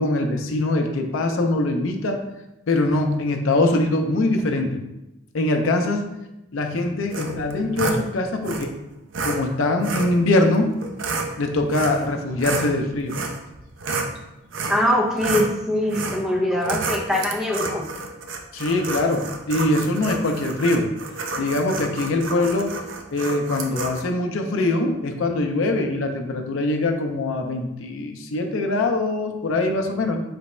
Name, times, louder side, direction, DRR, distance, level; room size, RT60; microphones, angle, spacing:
voice 1, 0.0-2.2 2.7-4.8 5.3-6.0 6.5-8.7 9.2-10.7 11.4-13.2 18.5-20.9 21.4-22.7 23.1-30.2, left 2 dB, 70° left, 4 dB, 0.5 m, -22 dB
sound 1, 7.1-8.0 8.4-8.6 9.1-9.4 9.8-10.1 10.8-11.3 11.7-12.1 12.4-14.1 14.5-14.8 15.2-15.5 15.9-16.2 16.6-24.0, right 3 dB, 65° right, 0.5 m, -29 dB
voice 2, 14.7-17.9, left 1 dB, ahead, -1 dB, 0.5 m, -22 dB
3.4 x 3.0 x 4.2 m, 0.92 s
head